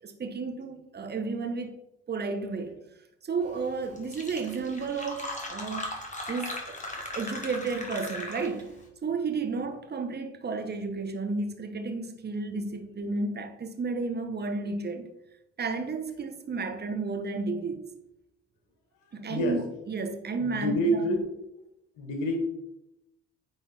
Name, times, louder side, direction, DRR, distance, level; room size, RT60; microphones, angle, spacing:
voice 1, 0.0-1.8 2.1-2.8 3.2-5.9 6.3-6.8 7.1-8.7 9.0-15.1 15.6-17.9 19.1-19.6 19.9-21.2, right 4 dB, 30° right, 1.2 m, -32 dB
Fill (with liquid), 3.6-3.7 4.0-8.7, left 1 dB, 20° left, 2.0 m, -38 dB
voice 2, 19.3-19.7 20.4-21.3 22.0-22.4, equal, 65° left, 1.7 m, -28 dB
9.3 x 3.9 x 4.3 m
figure-of-eight pair, 50°, 34 cm